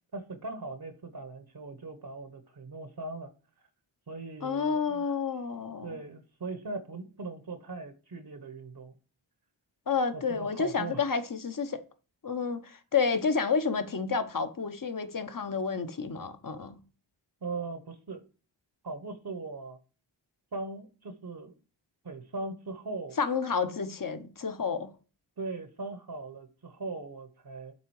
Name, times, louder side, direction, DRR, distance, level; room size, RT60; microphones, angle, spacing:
voice 1, 0.1-3.3 4.1-5.1 5.8-8.9 10.1-11.0 17.4-18.2 18.8-19.8 20.5-21.5 22.0-23.2 25.4-27.7, right 3 dB, 50° right, 1.0 m, -39 dB
voice 2, 4.4-5.9 9.9-11.8 12.2-16.8 23.2-24.9, left 5 dB, 45° left, 0.9 m, -30 dB
7.4 x 3.7 x 4.7 m
wide cardioid pair, 55°, 48 cm